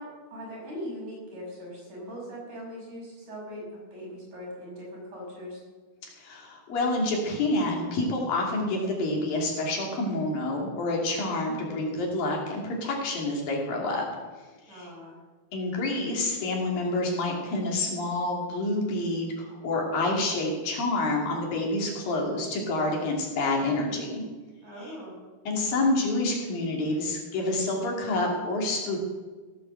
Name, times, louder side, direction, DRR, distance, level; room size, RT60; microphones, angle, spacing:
voice 1, 0.0-5.6 11.4-12.0 14.7-15.2 24.6-25.2, equal, 50° right, -4 dB, 7.3 m, -40 dB
voice 2, 6.2-14.0 14.7-14.9 15.5-24.2 24.8-25.0 25.5-29.0, left 2 dB, 65° left, -1 dB, 4.4 m, -28 dB
17.0 x 8.8 x 7.7 m, 1.3 s
omnidirectional pair, 4.4 m